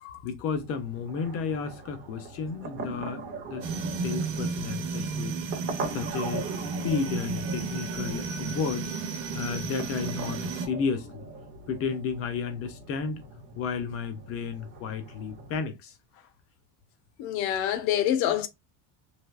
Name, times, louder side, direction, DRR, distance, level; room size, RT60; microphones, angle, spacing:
voice 1, 0.2-3.7 4.0-5.4 5.9-8.9 9.3-11.2 11.7-13.2 13.6-16.3, left 6 dB, 35° left, 0.4 m, -33 dB
sound 1, 0.6-15.6, right 3 dB, 25° right, 0.5 m, -41 dB
sound 2, 3.6-10.7, right 4 dB, 65° right, 0.9 m, -33 dB
voice 2, 17.2-18.5, left 11 dB, 65° left, 0.7 m, -26 dB
3.3 x 2.7 x 2.3 m
cardioid pair, 170°, 48 cm